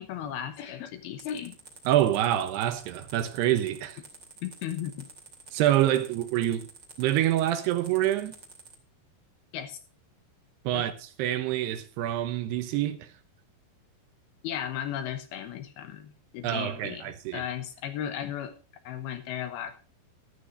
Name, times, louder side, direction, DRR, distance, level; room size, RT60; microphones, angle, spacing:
voice 1, 0.0-1.5 4.4-5.1 9.5-9.8 10.7-10.9 14.4-17.1 17.3-18.5 18.8-19.8, left 10 dB, 70° left, 2.6 m, -35 dB
sound 1, 1.2-8.7, right 4 dB, 30° right, 2.5 m, -49 dB
voice 2, 1.9-4.0 5.5-6.7 7.0-8.3 10.6-13.1 16.4-17.4, right 12 dB, 75° right, 2.7 m, -26 dB
15.0 x 13.0 x 2.6 m
omnidirectional pair, 5.2 m